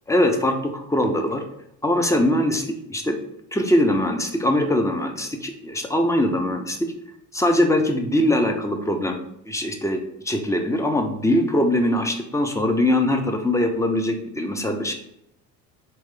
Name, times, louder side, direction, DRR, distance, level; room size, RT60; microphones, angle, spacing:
voice 1, 0.1-1.4 1.8-3.2 3.5-6.9 7.3-9.2 9.5-14.9, left 1 dB, 10° left, 5 dB, 0.7 m, -22 dB
4.5 x 3.2 x 3.7 m, 0.78 s
supercardioid pair, 75°, 39 cm